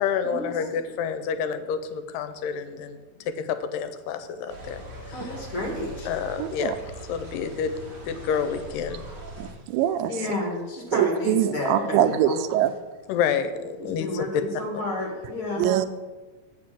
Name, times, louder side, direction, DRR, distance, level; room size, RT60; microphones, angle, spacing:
voice 1, 0.0-3.0 3.7-4.8 6.1-6.7 7.1-7.7 8.1-9.0 13.1-13.5 13.9-14.3, left 7 dB, 80° left, 10 dB, 2.3 m, -28 dB
sound 1, 4.5-9.5, right 1 dB, 35° right, 1.9 m, -40 dB
voice 2, 5.1-6.1 10.1-12.4 13.8-15.7, left 2 dB, 45° left, -1 dB, 2.2 m, -31 dB
voice 3, 6.4-6.8 9.4-10.1 10.9-12.7 15.6-15.9, right 11 dB, 90° right, 10 dB, 2.3 m, -23 dB
7.6 x 5.2 x 7.5 m, 1.3 s
omnidirectional pair, 4.0 m